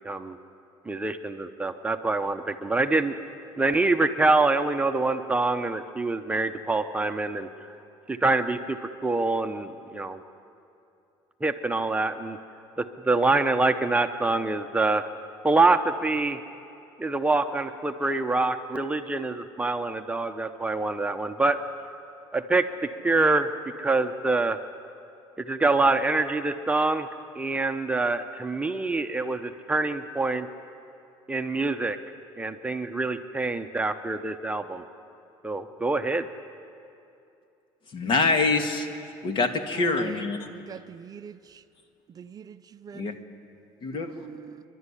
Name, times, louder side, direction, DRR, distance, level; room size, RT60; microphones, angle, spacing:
voice 1, 0.0-0.4 0.9-3.1 3.6-7.5 8.1-10.2 11.4-12.4 12.8-15.0 15.4-16.4 17.0-21.6 22.3-23.5 23.8-24.6 25.4-27.1 27.3-30.5 31.3-32.0 32.4-34.8 35.4-36.3, right 3 dB, 10° right, 0.9 m, -25 dB
voice 2, 37.9-40.5 42.9-43.1 43.8-44.1, left 3 dB, 45° left, 1.9 m, -25 dB
voice 3, 39.8-40.3 40.5-41.6 42.1-43.2 43.9-44.6, right 8 dB, 35° right, 0.6 m, -42 dB
28.5 x 12.0 x 9.9 m
cardioid pair, 115°, 11 cm